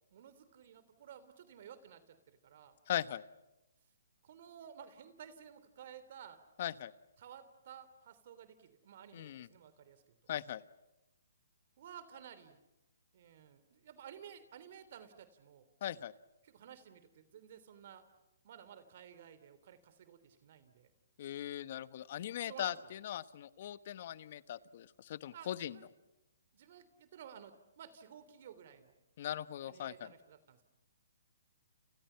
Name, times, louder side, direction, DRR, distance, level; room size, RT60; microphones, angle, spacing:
voice 1, 0.1-2.8 4.2-6.4 7.2-10.0 11.8-12.6 13.1-15.7 16.4-18.0 18.4-20.9 22.4-22.7 25.3-25.8 26.5-28.9 29.7-30.6, right 8 dB, 50° right, 13 dB, 3.3 m, -54 dB
voice 2, 2.9-3.2 6.6-6.9 9.1-9.5 10.3-10.6 15.8-16.1 21.2-25.8 29.2-30.1, left 11 dB, 50° left, 15 dB, 1.2 m, -40 dB
30.0 x 29.5 x 5.8 m, 0.94 s
hypercardioid pair, 150°, 0 cm